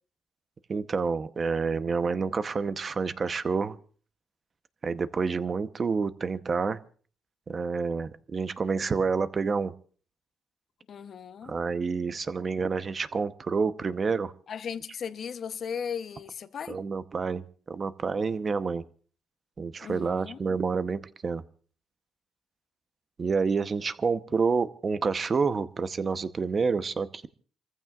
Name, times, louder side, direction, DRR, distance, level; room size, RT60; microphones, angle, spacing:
voice 1, 0.7-3.8 4.8-6.8 7.5-9.7 11.4-14.3 16.7-17.4 17.7-18.8 19.6-21.4 23.2-27.3, right 5 dB, 40° right, 0.9 m, -28 dB
voice 2, 10.9-11.5 14.5-16.8 19.8-20.4, left 7 dB, 55° left, 0.9 m, -36 dB
28.5 x 15.0 x 2.4 m
cardioid pair, 95°, 0 cm